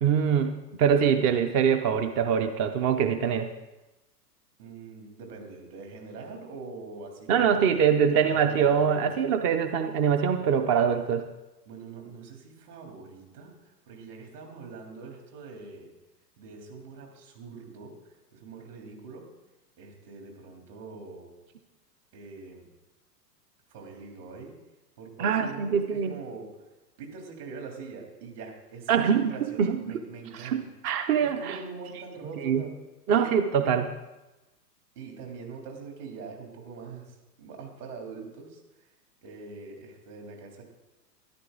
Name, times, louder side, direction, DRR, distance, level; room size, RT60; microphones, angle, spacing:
voice 1, 0.0-3.5 7.3-11.2 25.2-26.1 28.9-29.3 29.6-29.8 30.4-31.6 32.4-32.6 33.1-33.9, right 7 dB, 25° right, 7 dB, 0.5 m, -24 dB
voice 2, 4.6-9.1 10.4-10.8 11.7-15.9 16.4-17.9 18.3-19.2 19.8-21.3 22.1-22.6 23.7-24.6 25.0-26.5 27.0-30.6 31.2-32.7 33.1-33.3 34.9-38.9 39.2-40.6, right 4 dB, 65° right, 1 dB, 3.4 m, -43 dB
13.5 x 11.0 x 3.9 m, 1.0 s
hypercardioid pair, 105°, 50 cm